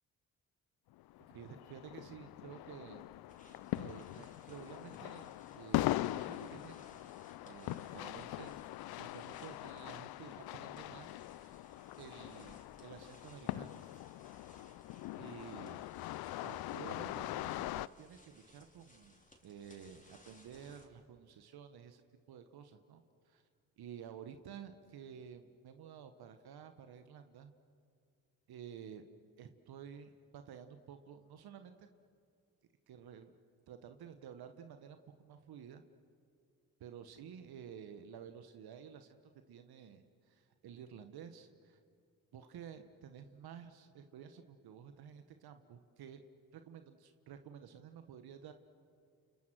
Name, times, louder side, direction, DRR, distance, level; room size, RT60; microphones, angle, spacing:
sound 1, 0.9-17.9, left 16 dB, 65° left, 0.6 m, -42 dB
voice 1, 1.3-3.1 3.7-7.1 7.4-8.6 9.0-11.6 12.0-13.8 15.2-15.8 16.4-17.7 18.0-22.0 22.3-23.4 23.8-27.5 28.5-29.0 29.4-31.9 32.9-33.3 33.7-35.8 36.8-39.2 39.5-41.8 42.3-46.2 46.5-48.5, right 8 dB, 70° right, 8 dB, 1.4 m, -52 dB
sound 2, 3.3-20.9, left 1 dB, 20° left, 5.2 m, -64 dB
29.5 x 28.5 x 6.3 m, 2.3 s
hypercardioid pair, 50°, 39 cm